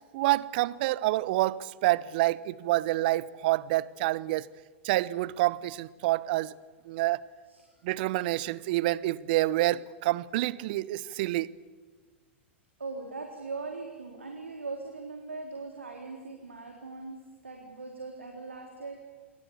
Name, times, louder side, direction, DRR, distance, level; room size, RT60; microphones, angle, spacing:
voice 1, 0.1-4.5 4.8-6.5 6.9-7.2 7.8-11.5, right 17 dB, 50° right, 1.0 m, -27 dB
voice 2, 12.8-19.0, right 3 dB, 80° right, 4.0 m, -40 dB
28.5 x 25.0 x 7.1 m
figure-of-eight pair, 95°, 7 cm